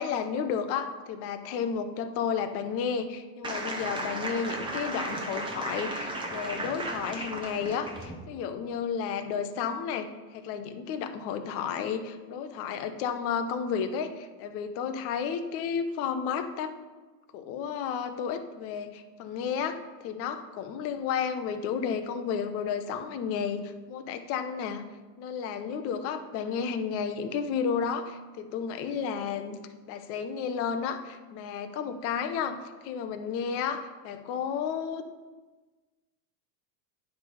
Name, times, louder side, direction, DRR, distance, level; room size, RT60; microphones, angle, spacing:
voice 1, 0.0-16.8 17.3-24.8 25.2-29.6 29.9-35.0, left 7 dB, 30° left, 8 dB, 0.4 m, -32 dB
sound 1, 3.4-8.1, right 1 dB, 10° right, 0.7 m, -35 dB
9.5 x 3.3 x 5.4 m, 1.3 s
supercardioid pair, 135°, 50 cm